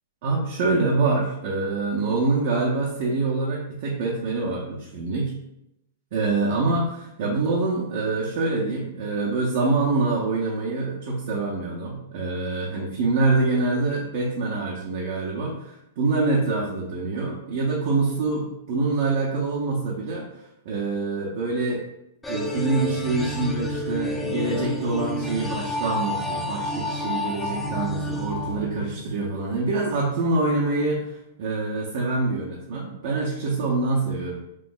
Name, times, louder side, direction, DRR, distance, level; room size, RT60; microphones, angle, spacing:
voice 1, 0.2-5.3 6.1-20.3 20.6-21.8 22.3-34.4, right 3 dB, 60° right, -3 dB, 0.7 m, -25 dB
sound 1, 22.2-29.2, left 1 dB, 5° left, 0.4 m, -30 dB
3.1 x 2.0 x 3.7 m, 0.85 s
hypercardioid pair, 135°, 0 cm